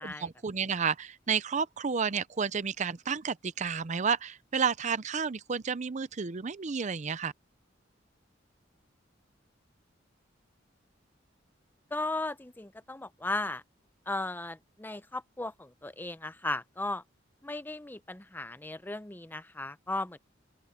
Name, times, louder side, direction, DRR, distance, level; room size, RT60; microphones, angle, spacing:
voice 1, 0.0-7.3, right 6 dB, 40° right, 0.5 m, -31 dB
voice 2, 11.9-13.6 14.1-17.0 17.4-20.2, left 2 dB, 10° left, 0.6 m, -36 dB
open air
head